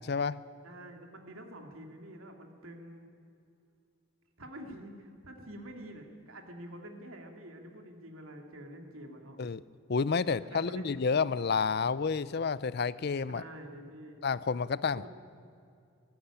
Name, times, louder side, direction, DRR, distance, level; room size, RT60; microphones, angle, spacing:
voice 1, 0.1-0.4 9.4-9.6 9.9-13.4 14.2-15.1, left 5 dB, 50° left, 18 dB, 0.5 m, -30 dB
voice 2, 0.6-3.0 4.4-9.4 10.3-10.9 13.3-14.2 14.9-15.1, right 1 dB, 80° right, 4 dB, 2.7 m, -47 dB
18.5 x 14.5 x 10.0 m, 2.5 s
head